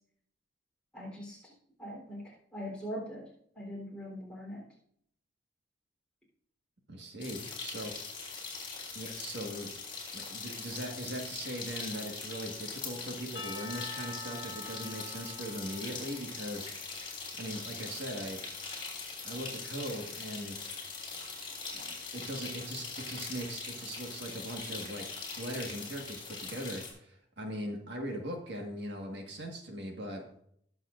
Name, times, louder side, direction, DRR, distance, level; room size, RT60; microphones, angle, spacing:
voice 1, 0.9-1.5 1.8-3.3 3.5-4.6, equal, 5° left, -5 dB, 3.6 m, -41 dB
voice 2, 6.9-8.4 9.0-9.7 10.1-18.4 19.2-20.6 21.4-21.8 22.1-25.1 25.4-30.4, right 1 dB, 65° right, 1 dB, 1.7 m, -40 dB
sound 1, 7.2-26.9, left 4 dB, 25° left, 3.7 m, -42 dB
Percussion / Church bell, 13.3-17.0, left 3 dB, 70° left, 1.3 m, -46 dB
19.5 x 7.2 x 2.6 m, 0.67 s
head